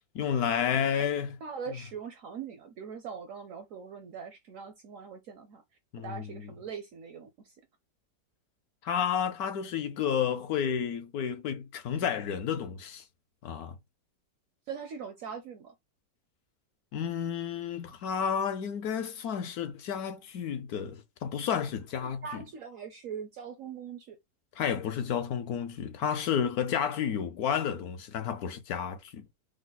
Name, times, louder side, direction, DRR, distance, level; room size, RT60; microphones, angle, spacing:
voice 1, 0.1-1.4 5.9-6.5 8.8-13.0 13.4-13.8 16.9-22.4 24.6-29.3, left 8 dB, 70° left, 1.0 m, -31 dB
voice 2, 1.4-5.6 6.0-7.6 14.7-15.7 22.0-24.2, right 6 dB, 65° right, 0.8 m, -41 dB
4.9 x 2.1 x 3.9 m
omnidirectional pair, 1.9 m